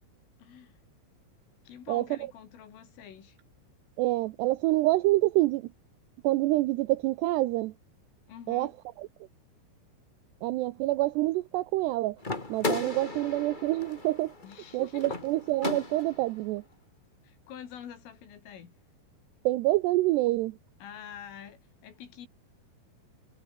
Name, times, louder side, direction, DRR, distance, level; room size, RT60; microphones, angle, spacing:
voice 1, 0.4-0.8 1.6-3.4 8.3-8.7 14.4-15.2 17.2-18.7 20.8-22.3, left 9 dB, 80° left, 6.1 m, -46 dB
voice 2, 4.0-5.7 6.2-7.7 8.5-8.7 10.4-12.2 12.5-14.3 14.7-16.6 19.5-20.6, right 18 dB, 85° right, 2.4 m, -26 dB
sound 1, 12.2-16.3, left 2 dB, 45° left, 0.6 m, -35 dB
omnidirectional pair, 5.7 m